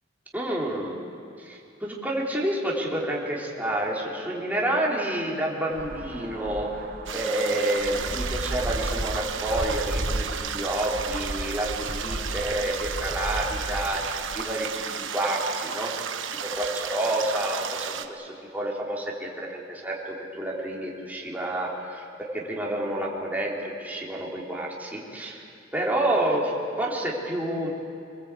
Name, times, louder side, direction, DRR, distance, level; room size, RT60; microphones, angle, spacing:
voice 1, 0.3-1.0 1.4-6.7 7.1-14.7 15.0-15.9 16.4-22.0 22.3-25.4 25.7-27.7, right 1 dB, 10° right, -3 dB, 3.5 m, -29 dB
sound 1, 5.7-14.5, right 1 dB, 45° right, 1.0 m, -34 dB
sound 2, 7.1-18.1, right 7 dB, 75° right, 1.1 m, -33 dB
25.5 x 20.0 x 8.3 m, 2.6 s
head